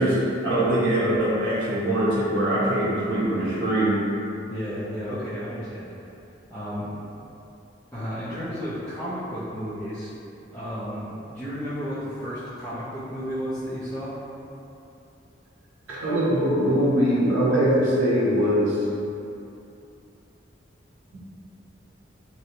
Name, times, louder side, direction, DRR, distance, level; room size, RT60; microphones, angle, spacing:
voice 1, 0.0-4.0 15.9-18.8 21.1-21.2, right 1 dB, 80° right, -8 dB, 0.6 m, -22 dB
voice 2, 4.5-5.9 6.5-6.9 7.9-10.1 10.5-14.2, equal, 10° left, -15 dB, 0.5 m, -32 dB
3.1 x 2.6 x 2.9 m, 2.8 s
head